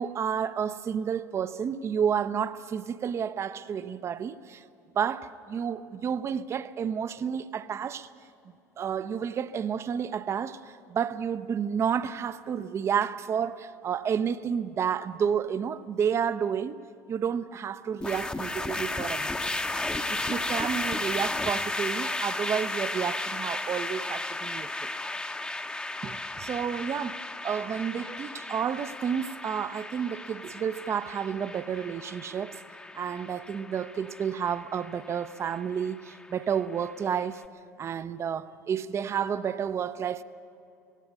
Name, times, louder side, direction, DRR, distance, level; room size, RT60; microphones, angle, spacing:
voice 1, 0.0-4.6 4.9-8.1 8.8-16.8 17.1-19.3 20.1-24.9 26.0-32.6 32.9-37.4 37.8-40.2, right 7 dB, 35° right, 0.6 m, -30 dB
sound 1, 18.0-37.3, left 2 dB, 10° left, 0.9 m, -34 dB
17.5 x 17.5 x 8.4 m
figure-of-eight pair, 65°, 8 cm